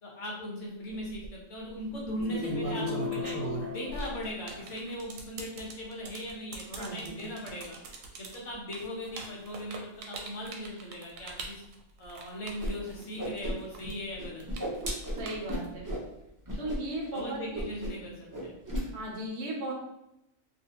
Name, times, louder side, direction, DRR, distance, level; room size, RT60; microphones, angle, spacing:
voice 1, 0.0-3.3 3.7-7.8 8.2-11.6 12.0-14.4 16.5-16.7 17.1-18.5, equal, 70° left, -3 dB, 1.2 m, -39 dB
sound 1, 0.9-1.3 2.0-13.4 13.7-15.8, right 4 dB, 85° right, 1.0 m, -40 dB
sound 2, 2.2-4.8, left 8 dB, 50° left, 0.5 m, -37 dB
voice 2, 6.8-7.2 15.2-15.8 16.6-17.4 18.9-19.7, right 1 dB, 65° right, -1 dB, 0.9 m, -36 dB
Whoosh swoosh swish, 12.6-12.7 13.0-13.9 14.2-16.1 16.5-16.8 17.0-17.2 17.5-18.1 18.3-18.9, equal, 30° right, 0.3 m, -34 dB
2.7 x 2.6 x 2.8 m, 0.84 s
omnidirectional pair, 1.3 m